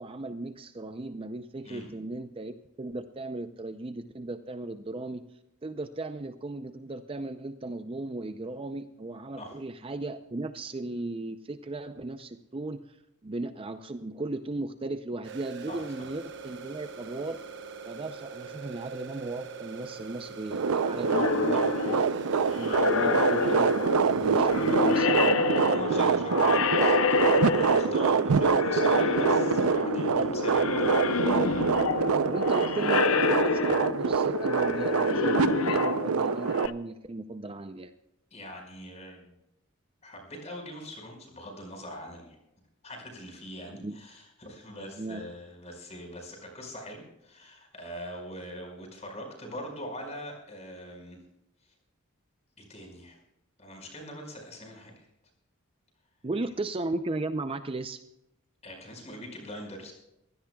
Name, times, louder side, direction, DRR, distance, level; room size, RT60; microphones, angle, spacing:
voice 1, 0.0-5.2 5.6-13.0 13.2-17.4 17.8-22.0 22.6-25.6 32.3-37.9 43.7-44.0 45.0-45.2 56.2-58.0, right 2 dB, 25° right, 9 dB, 0.5 m, -36 dB
sound 1, 15.2-25.0, right 6 dB, 55° right, 1.0 m, -43 dB
sound 2, 20.5-36.7, right 5 dB, 80° right, 0.6 m, -25 dB
sound 3, 21.0-28.1 28.3-36.7, left 5 dB, 70° left, 0.7 m, -28 dB
voice 2, 21.5-21.8 22.3-22.5 25.6-31.3 38.3-39.3 40.0-42.4 42.8-51.2 52.6-53.2 53.6-55.1 58.6-59.9, equal, 30° left, 1 dB, 4.9 m, -42 dB
23.5 x 16.0 x 2.3 m, 0.85 s
head